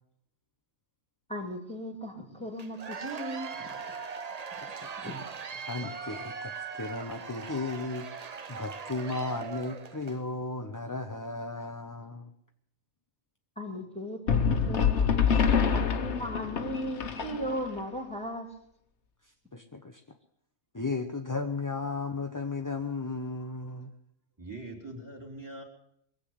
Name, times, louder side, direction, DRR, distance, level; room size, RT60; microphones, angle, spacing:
voice 1, 1.3-3.7 4.6-4.7 5.0-5.2 13.6-18.5, equal, 5° left, 3 dB, 2.4 m, -37 dB
Cheering / Applause / Crowd, 2.6-10.2, right 5 dB, 35° right, 0.7 m, -40 dB
voice 2, 4.6-5.1 5.7-8.1 8.5-12.3 19.5-20.0 20.7-23.9, left 3 dB, 20° left, 4 dB, 0.6 m, -35 dB
sound 1, 14.3-17.8, left 7 dB, 55° left, 1.3 m, -26 dB
voice 3, 24.4-25.6, right 2 dB, 15° right, 2 dB, 3.1 m, -43 dB
22.5 x 7.9 x 7.9 m, 0.71 s
omnidirectional pair, 1.4 m